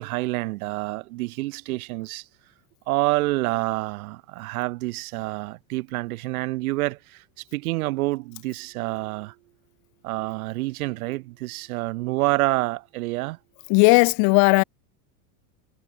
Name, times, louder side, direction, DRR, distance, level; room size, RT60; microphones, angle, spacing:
voice 1, 0.0-2.3 2.9-7.2 7.5-9.3 10.0-13.4, right 20 dB, 75° right, 2.3 m, -27 dB
voice 2, 13.7-14.6, left 34 dB, 55° left, 1.8 m, -16 dB
supercardioid pair, 135°, 43 cm